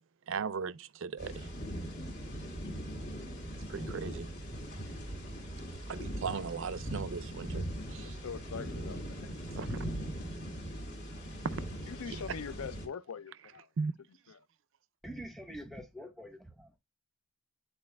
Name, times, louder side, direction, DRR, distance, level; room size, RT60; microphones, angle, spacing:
voice 1, 0.3-1.5 3.7-4.3 5.9-7.6 7.9-8.2 9.6-9.8 13.8-13.9, right 5 dB, 60° right, 0.4 m, -37 dB
sound 1, 1.2-12.9, right 1 dB, 50° left, 2.0 m, -40 dB
voice 2, 7.8-9.3 11.8-13.7 14.1-14.5, left 6 dB, 75° left, 0.5 m, -43 dB
voice 3, 15.0-16.7, equal, ahead, 0.9 m, -45 dB
9.7 x 4.2 x 2.3 m
head